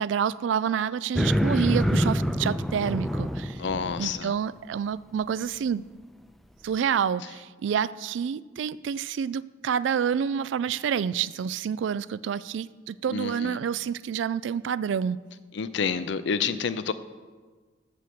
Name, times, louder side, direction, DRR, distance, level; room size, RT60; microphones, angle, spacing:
voice 1, 0.0-3.6 4.0-5.8 6.6-15.2, right 7 dB, 70° right, 0.3 m, -28 dB
sound 1, 1.2-4.2, equal, ahead, 0.4 m, -26 dB
voice 2, 3.5-4.3 13.1-13.6 15.5-16.9, left 6 dB, 65° left, 0.5 m, -29 dB
8.3 x 6.5 x 7.7 m
head